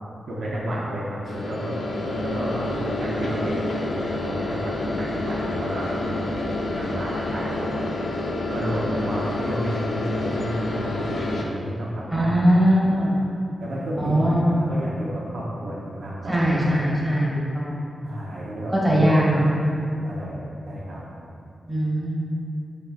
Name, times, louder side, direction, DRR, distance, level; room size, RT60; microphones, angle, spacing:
voice 1, 0.3-1.8 2.0-8.2 8.5-12.5 13.6-16.7 18.0-19.3 19.8-21.0, equal, 90° right, -6 dB, 0.9 m, -31 dB
sound 1, 1.2-11.4, left 2 dB, 65° left, 0.7 m, -28 dB
voice 2, 12.1-13.2 14.0-14.6 16.2-17.8 18.7-19.5 21.7-22.1, equal, 10° right, -6 dB, 1.1 m, -20 dB
6.6 x 6.1 x 2.5 m, 2.8 s
wide cardioid pair, 180°, 0 cm